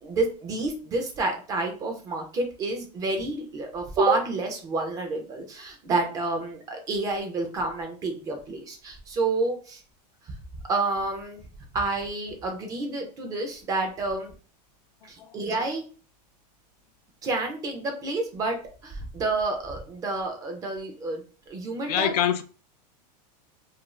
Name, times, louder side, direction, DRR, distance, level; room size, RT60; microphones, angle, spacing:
voice 1, 0.0-9.8 10.7-11.4 11.7-14.3 15.0-15.8 17.2-18.6 18.8-22.1, right 3 dB, 15° right, 0.3 m, -29 dB
voice 2, 21.9-22.4, left 10 dB, 70° left, 0.4 m, -24 dB
2.5 x 2.3 x 3.0 m
supercardioid pair, 160°, 21 cm